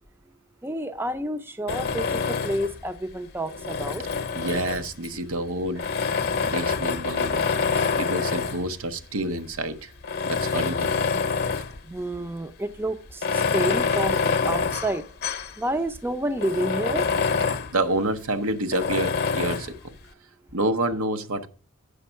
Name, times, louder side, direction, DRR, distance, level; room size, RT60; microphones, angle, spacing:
voice 1, 0.6-4.0 11.8-15.0 15.6-17.1, right 1 dB, 10° right, 0.5 m, -29 dB
Tools, 1.7-2.8 3.4-5.1 5.8-8.7 9.4-9.5 10.0-11.8 12.1-12.2 13.1-15.6 15.9-16.0 16.4-17.7 18.7-19.7, left 5 dB, 45° left, 0.8 m, -26 dB
voice 2, 4.3-5.9 6.4-7.5 8.0-9.9 10.2-10.9 17.7-19.9 20.5-21.5, right 2 dB, 75° right, 0.9 m, -28 dB
8.4 x 6.1 x 5.5 m
head